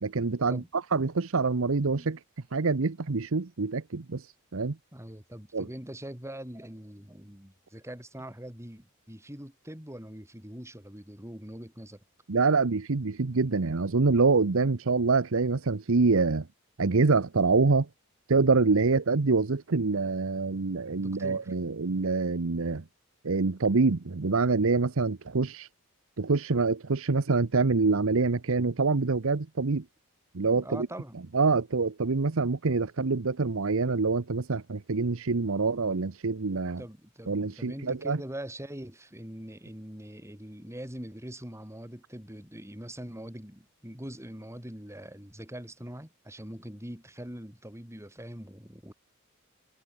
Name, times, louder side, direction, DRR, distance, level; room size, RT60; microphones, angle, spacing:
voice 1, 0.0-0.6 0.9-2.2 2.5-4.3 4.5-4.8 5.5-5.7 12.3-16.5 16.8-17.9 18.3-22.8 23.2-25.7 26.2-29.8 30.3-30.9 31.3-36.8 37.3-38.2, right 4 dB, 65° right, 0.8 m, -25 dB
voice 2, 4.9-12.0 20.9-21.5 30.4-31.2 36.8-48.9, right 1 dB, 15° right, 5.3 m, -43 dB
head